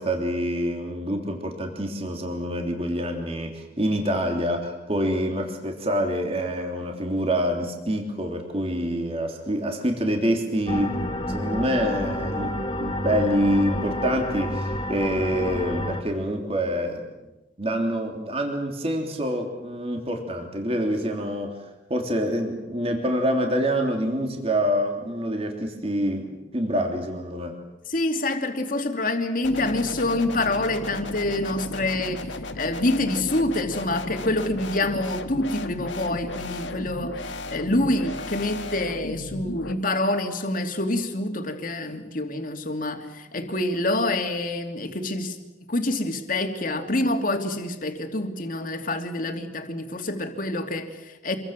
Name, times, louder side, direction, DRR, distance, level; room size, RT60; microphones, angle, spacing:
voice 1, 0.0-11.0 11.3-17.0 17.6-21.6 21.9-27.5, equal, 30° right, 3.3 m, -26 dB
sound 1, 10.7-16.0, left 1 dB, 25° left, 2.4 m, -29 dB
voice 2, 27.9-32.3 32.5-37.2 37.5-45.4 45.7-51.4, left 2 dB, 45° left, 2.8 m, -26 dB
sound 2, 29.4-39.7, left 2 dB, 90° left, 1.8 m, -35 dB
27.0 x 23.0 x 7.5 m
head